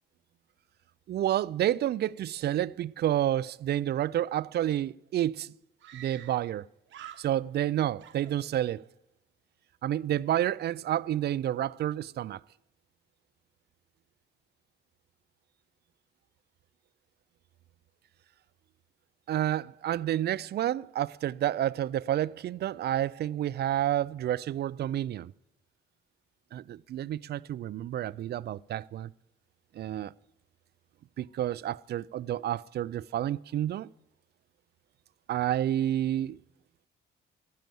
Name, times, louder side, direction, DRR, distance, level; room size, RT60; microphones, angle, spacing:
voice 1, 1.1-5.5 5.9-6.6 7.2-8.8 9.8-12.4 19.3-25.3 26.5-29.1 29.7-30.1 31.2-33.9 35.3-36.4, right 12 dB, 55° right, 0.4 m, -29 dB
Screaming, 5.0-5.1 5.8-6.6 6.9-7.7 8.0-8.9, right 11 dB, 75° right, 1.1 m, -49 dB
11.0 x 10.5 x 7.6 m
cardioid pair, 90°, 20 cm